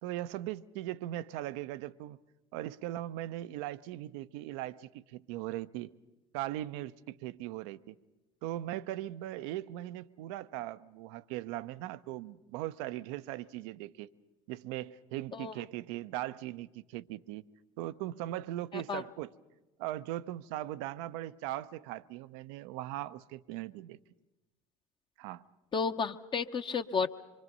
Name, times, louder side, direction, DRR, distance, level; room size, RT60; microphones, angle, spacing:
voice 1, 0.0-2.2 2.5-5.9 6.3-7.9 8.4-14.1 14.5-17.4 17.8-19.3 19.8-24.0 25.2-25.4, right 14 dB, 65° right, 0.7 m, -39 dB
voice 2, 25.7-27.1, left 5 dB, 30° left, 0.9 m, -32 dB
25.5 x 24.0 x 5.4 m
hypercardioid pair, 70°, 16 cm